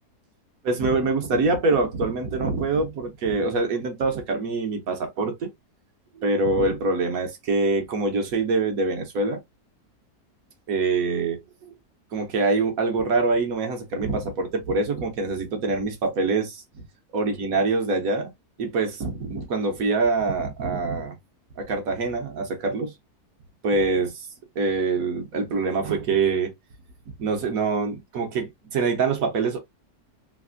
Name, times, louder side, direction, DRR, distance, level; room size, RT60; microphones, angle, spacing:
voice 1, 0.6-5.5 6.2-9.4 10.7-11.4 12.1-16.8 17.1-18.3 18.6-21.1 21.6-22.9 23.6-24.3 24.6-26.5 27.2-29.6, right 3 dB, 65° right, 1.3 m, -24 dB
3.3 x 2.6 x 2.5 m
omnidirectional pair, 1.7 m